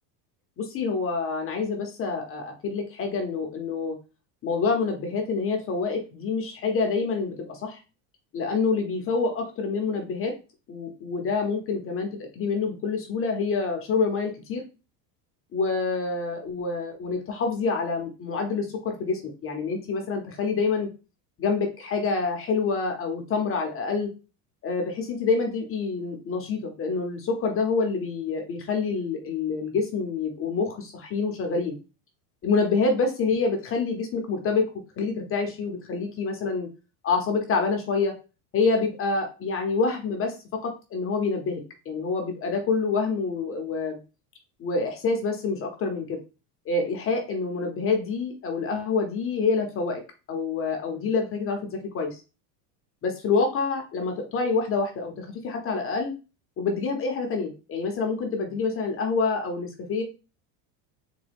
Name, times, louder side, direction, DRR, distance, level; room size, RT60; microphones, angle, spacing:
voice 1, 0.6-4.0 4.4-7.8 8.3-10.3 10.7-14.6 15.5-20.9 21.4-24.1 24.6-31.8 32.4-34.6 35.0-36.7 37.0-38.1 38.5-40.3 40.6-41.6 41.9-44.0 44.6-46.2 46.7-50.0 50.3-52.2 53.0-56.1 56.6-60.0, left 4 dB, 30° left, 3 dB, 0.6 m, -27 dB
3.7 x 2.2 x 3.4 m, 0.31 s
supercardioid pair, 130°, 47 cm